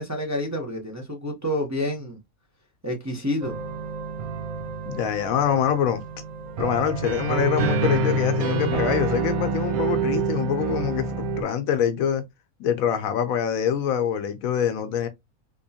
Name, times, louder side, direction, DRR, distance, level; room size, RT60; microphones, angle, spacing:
voice 1, 0.0-2.2 2.8-3.5, left 1 dB, 15° right, 0.6 m, -28 dB
sound 1, 3.4-11.4, right 3 dB, 80° right, 1.2 m, -27 dB
voice 2, 4.9-6.0 6.6-12.2 12.6-15.1, left 8 dB, 75° left, 1.1 m, -25 dB
3.6 x 2.9 x 2.7 m
omnidirectional pair, 1.5 m